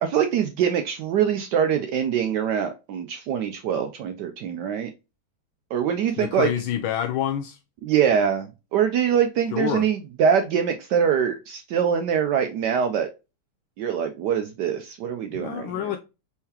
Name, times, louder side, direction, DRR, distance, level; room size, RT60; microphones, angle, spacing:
voice 1, 0.0-4.9 5.7-6.5 7.8-13.1 13.8-15.9, right 8 dB, 75° right, 1.0 m, -24 dB
voice 2, 6.2-7.6 9.5-9.8 15.3-16.0, left 10 dB, 85° left, 1.4 m, -27 dB
4.4 x 3.7 x 2.8 m
omnidirectional pair, 2.2 m